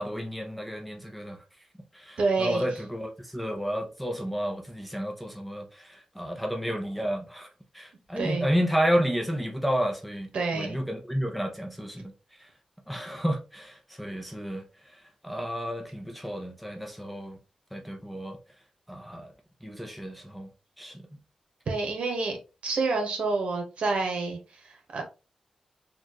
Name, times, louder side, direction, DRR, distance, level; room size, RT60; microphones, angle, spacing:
voice 1, 0.0-1.4 1.9-7.5 7.7-12.1 12.9-14.6 15.2-17.4 17.7-18.4 18.9-19.3 19.6-20.5 20.8-21.0, equal, ahead, 0.8 m, -31 dB
voice 2, 2.2-2.6 8.2-8.5 10.3-10.8 21.7-22.4 22.6-25.0, right 3 dB, 70° right, 1.3 m, -28 dB
4.3 x 2.5 x 3.0 m
cardioid pair, 80°, 2 cm